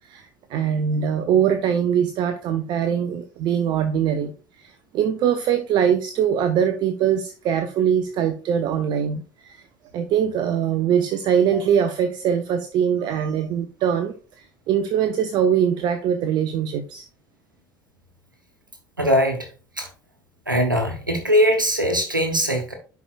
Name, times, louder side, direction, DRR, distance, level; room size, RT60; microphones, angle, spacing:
voice 1, 0.1-4.3 4.6-9.6 9.9-14.1 14.7-17.0, right 8 dB, 45° right, 0.7 m, -22 dB
voice 2, 19.0-19.5 19.8-19.9 20.5-22.7, equal, 90° right, 1.1 m, -21 dB
11.0 x 4.7 x 2.3 m
figure-of-eight pair, 65°, 10 cm